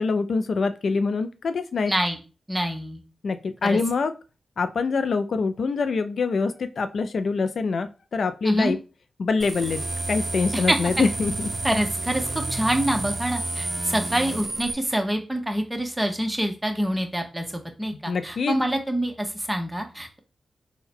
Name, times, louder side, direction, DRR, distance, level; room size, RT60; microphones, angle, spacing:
voice 1, 0.0-1.9 3.2-4.1 4.6-8.8 9.2-11.3 18.1-18.6, left 4 dB, 70° left, 10 dB, 0.3 m, -25 dB
voice 2, 1.9-2.2 2.5-3.0 3.6-3.8 8.4-8.7 10.5-10.8 11.6-20.2, right 1 dB, 10° right, 4 dB, 1.0 m, -26 dB
sound 1, 9.4-14.7, right 2 dB, 40° right, 0.6 m, -30 dB
3.7 x 2.2 x 4.4 m, 0.33 s
cardioid pair, 60°, 0 cm